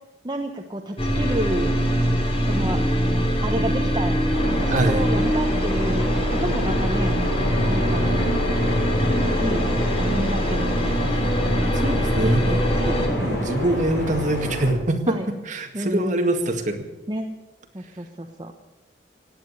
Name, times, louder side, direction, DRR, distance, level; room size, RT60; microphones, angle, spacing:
voice 1, 0.2-1.7 2.5-2.8 3.4-4.1 4.5-7.1 7.7-8.2 9.4-9.7 10.0-11.3 12.2-13.0 13.6-13.8 15.1-15.3 15.7-16.3 17.1-17.4 17.7-18.5, right 1 dB, 25° right, 3 dB, 1.0 m, -30 dB
sound 1, 1.0-13.1, equal, 35° left, 2.9 m, -22 dB
sound 2, 4.3-14.7, left 1 dB, 70° left, 5.7 m, -29 dB
voice 2, 4.7-5.0 9.3-9.4 11.7-12.6 13.2-15.2 15.5-16.9, right 1 dB, 45° right, 4 dB, 2.0 m, -24 dB
17.0 x 9.5 x 8.4 m, 1.1 s
head